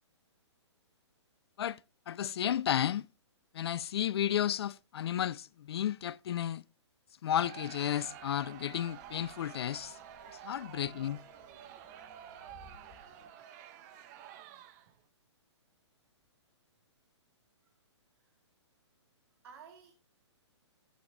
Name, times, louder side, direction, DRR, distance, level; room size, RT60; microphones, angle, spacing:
voice 1, 2.1-3.1 3.5-6.6 7.2-10.0 10.4-11.2, left 10 dB, 60° left, 0.5 m, -33 dB
Crowd, 7.3-15.0, right 10 dB, 35° right, 1.1 m, -50 dB
sound 1, 7.5-13.3, left 5 dB, 35° left, 1.2 m, -62 dB
voice 2, 10.6-11.0 17.6-17.8 18.1-18.4 19.4-19.9, right 7 dB, 55° right, 2.4 m, -56 dB
16.5 x 8.7 x 2.8 m
hypercardioid pair, 135°, 15 cm